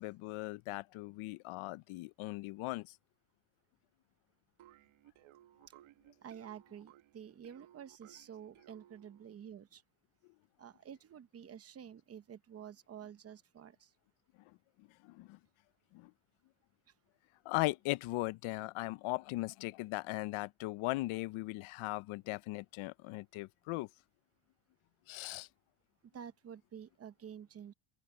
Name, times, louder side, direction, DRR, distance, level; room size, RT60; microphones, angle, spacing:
voice 1, 0.0-2.9 14.8-15.4 15.9-16.1 17.5-23.9 25.1-25.5, left 20 dB, 80° left, 0.7 m, -38 dB
sound 1, 4.6-9.4, right 13 dB, 80° right, 1.9 m, -62 dB
voice 2, 6.2-9.8 10.6-13.9 26.1-27.7, right 8 dB, 30° right, 0.8 m, -50 dB
open air
cardioid pair, 175°, 48 cm